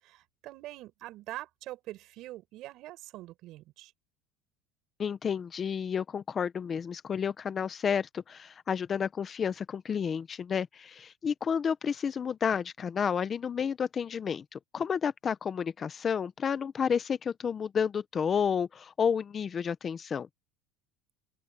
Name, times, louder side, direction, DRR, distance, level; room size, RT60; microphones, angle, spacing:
voice 1, 0.0-3.9, right 16 dB, 55° right, 7.2 m, -44 dB
voice 2, 5.0-20.3, left 7 dB, 25° left, 0.8 m, -31 dB
open air
cardioid pair, 145°, 0 cm